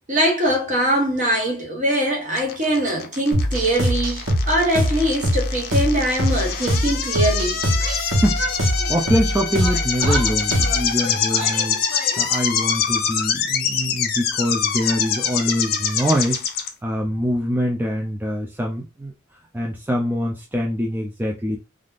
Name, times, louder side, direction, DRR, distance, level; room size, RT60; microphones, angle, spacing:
voice 1, 0.1-7.6, right 1 dB, 40° right, 1.1 m, -22 dB
sound 1, 2.4-16.7, left 7 dB, 50° left, 0.5 m, -25 dB
sound 2, 3.3-10.9, equal, 85° right, 1.0 m, -22 dB
Yell, 7.6-9.3 9.6-12.4, right 1 dB, 65° right, 1.2 m, -33 dB
voice 2, 8.1-11.8 12.2-19.1 19.5-21.6, equal, 10° right, 0.3 m, -24 dB
3.5 x 2.4 x 2.4 m
head